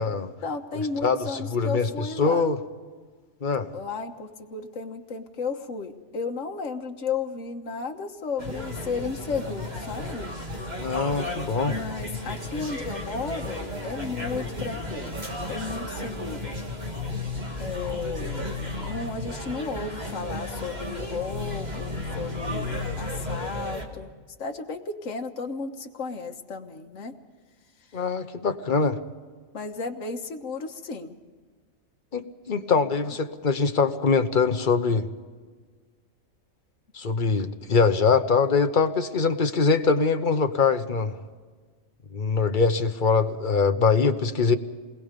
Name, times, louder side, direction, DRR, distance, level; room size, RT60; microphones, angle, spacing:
voice 1, 0.4-2.5 3.7-10.3 11.7-15.2 15.5-16.5 17.6-18.5 18.8-24.1 24.4-27.1 27.9-28.0 29.5-31.2, left 4 dB, 65° left, 3 dB, 1.6 m, -34 dB
voice 2, 1.0-2.6 3.4-3.7 10.8-11.7 27.9-29.0 32.1-35.1 36.9-41.1 42.1-44.6, left 4 dB, 40° left, 8 dB, 1.1 m, -23 dB
sound 1, 8.4-23.9, left 1 dB, 30° right, 2.4 m, -33 dB
27.5 x 21.0 x 5.2 m, 1.5 s
omnidirectional pair, 1.4 m